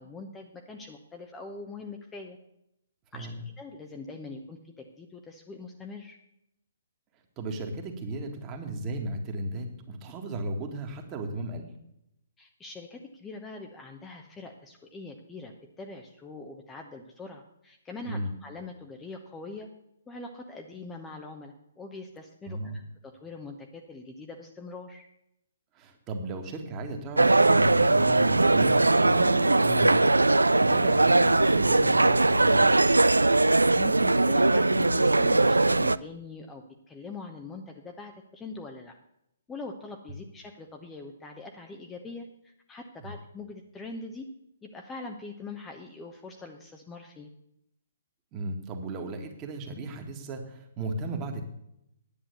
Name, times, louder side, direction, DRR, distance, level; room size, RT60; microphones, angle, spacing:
voice 1, 0.0-2.4 3.1-6.2 12.4-19.7 20.1-25.1 33.7-38.9 39.5-42.3 42.7-44.3 44.6-47.3, left 3 dB, 10° left, 2 dB, 0.9 m, -43 dB
voice 2, 7.4-11.7 18.0-18.3 22.5-22.8 25.8-30.2 30.6-32.7 43.0-43.1 48.3-51.4, right 2 dB, 25° right, 4 dB, 1.8 m, -35 dB
sound 1, 27.2-36.0, right 2 dB, 75° right, 0.3 m, -21 dB
10.5 x 8.7 x 6.8 m, 0.79 s
figure-of-eight pair, 125°, 0 cm